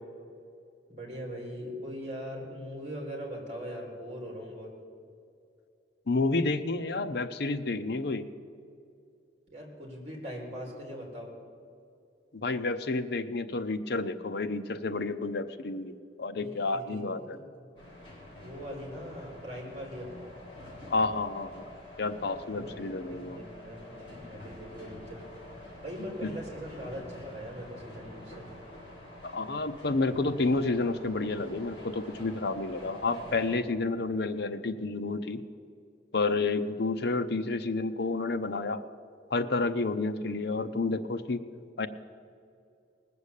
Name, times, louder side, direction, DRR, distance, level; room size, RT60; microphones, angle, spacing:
voice 1, 0.9-4.7 9.5-11.3 16.4-17.7 18.4-20.3 22.5-25.2 25.8-28.5, equal, 35° right, 0 dB, 3.5 m, -41 dB
voice 2, 6.1-8.2 12.3-17.4 20.9-23.4 26.2-26.3 29.2-35.4 36.1-38.8 39.3-41.4 41.8-41.9, left 3 dB, 65° left, 10 dB, 0.7 m, -30 dB
sound 1, 17.8-33.6, left 1 dB, 30° left, 4.2 m, -47 dB
19.5 x 7.0 x 8.2 m, 2.5 s
head